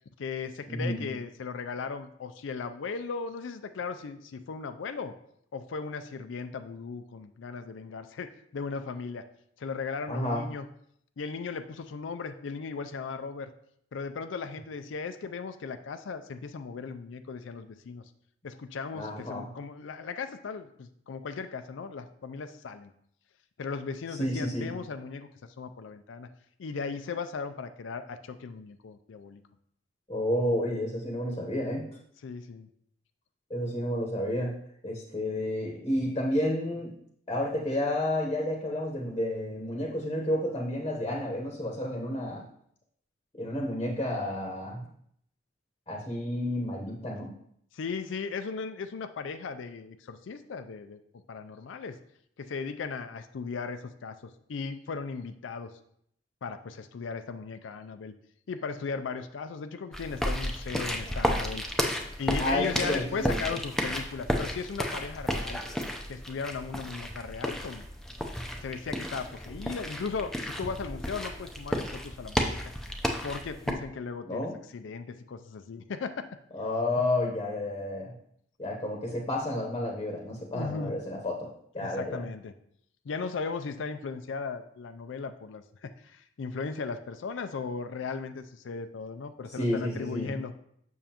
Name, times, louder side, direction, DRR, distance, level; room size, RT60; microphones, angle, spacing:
voice 1, 0.2-5.1 5.5-9.3 9.6-10.7 11.2-13.5 13.9-18.0 18.4-22.9 23.6-25.3 25.6-26.3 26.6-29.4 32.2-32.7 47.7-52.0 52.4-55.8 56.4-58.1 58.5-61.6 62.2-65.6 66.1-67.8 68.6-72.6 73.2-74.5 74.7-76.3 77.0-77.1 80.5-81.0 81.8-82.5 83.0-90.5, left 5 dB, 80° left, 9 dB, 0.4 m, -37 dB
voice 2, 0.7-1.0 10.1-10.4 18.9-19.5 24.2-24.7 30.1-31.9 33.5-34.6 34.8-36.9 37.3-42.4 43.4-44.9 45.9-47.3 62.4-63.4 74.2-74.6 76.5-78.1 78.6-81.5 81.7-82.2 89.5-90.4, left 1 dB, 25° left, 0 dB, 0.9 m, -31 dB
sound 1, 59.9-73.7, equal, 5° left, 0.6 m, -33 dB
7.0 x 6.3 x 2.9 m, 0.69 s
head